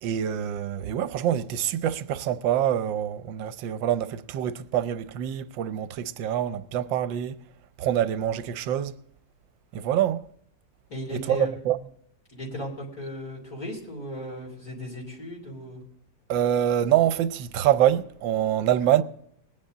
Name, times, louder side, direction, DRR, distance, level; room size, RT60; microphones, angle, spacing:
voice 1, 0.0-7.4 7.8-8.9 9.7-10.2 11.3-11.8 16.3-19.0, right 11 dB, 80° right, 1.4 m, -25 dB
voice 2, 10.9-11.5 12.3-15.8, equal, 45° left, 3.8 m, -36 dB
20.5 x 9.8 x 3.8 m
omnidirectional pair, 2.1 m